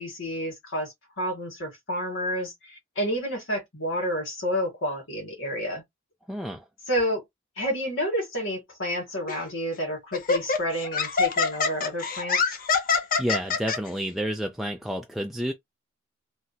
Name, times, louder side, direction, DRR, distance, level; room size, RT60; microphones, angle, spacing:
voice 1, 0.0-5.8 6.9-7.2 7.6-12.6, equal, 65° left, 2.0 m, -30 dB
voice 2, 6.3-6.6 13.2-15.5, equal, ahead, 0.3 m, -30 dB
Laughter, 9.3-9.5 10.1-13.8, left 5 dB, 45° left, 0.7 m, -24 dB
3.3 x 2.8 x 2.2 m
head